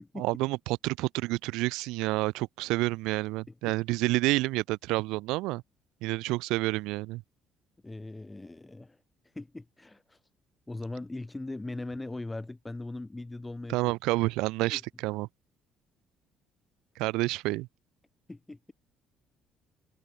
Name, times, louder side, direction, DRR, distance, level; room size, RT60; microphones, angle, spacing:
voice 1, 0.2-5.6 6.0-7.2 13.7-15.3 17.0-17.7, right 20 dB, 85° right, 0.4 m, -29 dB
voice 2, 7.8-9.0 9.2-10.2 10.7-13.8 14.7-14.8 18.3-18.7, left 2 dB, 15° left, 2.6 m, -40 dB
open air
cardioid pair, 90°, 0 cm